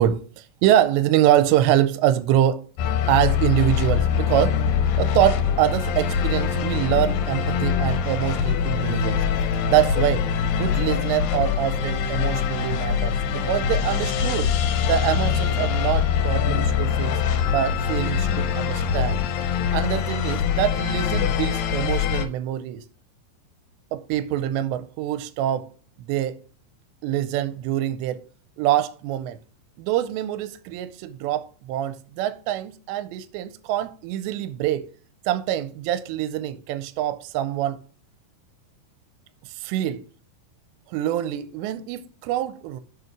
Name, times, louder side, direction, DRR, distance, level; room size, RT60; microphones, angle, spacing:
voice 1, 0.0-2.7 3.1-4.7 5.0-9.2 9.7-10.2 10.5-14.5 14.9-17.1 17.5-19.2 19.7-22.8 23.9-25.7 26.0-26.4 27.0-28.2 28.6-29.4 29.8-34.9 35.3-37.8 39.5-40.0 40.9-42.8, right 12 dB, 90° right, 2.8 m, -24 dB
sound 1, 2.8-22.3, left 9 dB, 80° left, 2.1 m, -24 dB
sound 2, 3.7-19.2, right 2 dB, 55° right, 1.7 m, -32 dB
6.8 x 6.8 x 5.9 m
omnidirectional pair, 5.0 m